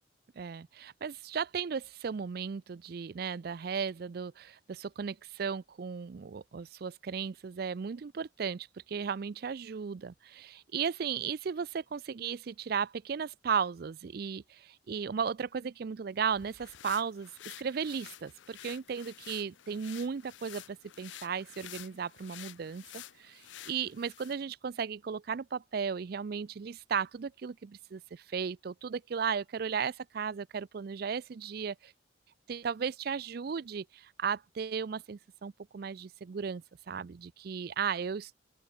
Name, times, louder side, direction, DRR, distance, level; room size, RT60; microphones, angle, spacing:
voice 1, 0.4-31.9 32.5-38.3, right 6 dB, 50° right, 0.4 m, -35 dB
sound 1, 16.2-24.4, left 12 dB, 70° left, 0.6 m, -50 dB
open air
head